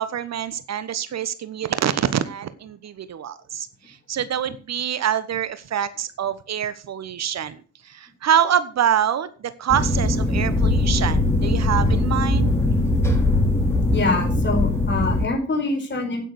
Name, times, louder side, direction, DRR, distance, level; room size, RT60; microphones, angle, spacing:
voice 1, 0.0-12.5, right 9 dB, 45° right, 14 dB, 1.2 m, -25 dB
sound 1, 9.7-15.3, left 2 dB, 5° left, 4.1 m, -20 dB
voice 2, 13.9-16.2, left 3 dB, 30° left, 3 dB, 4.7 m, -25 dB
9.3 x 8.9 x 6.7 m, 0.39 s
hypercardioid pair, 55°, 37 cm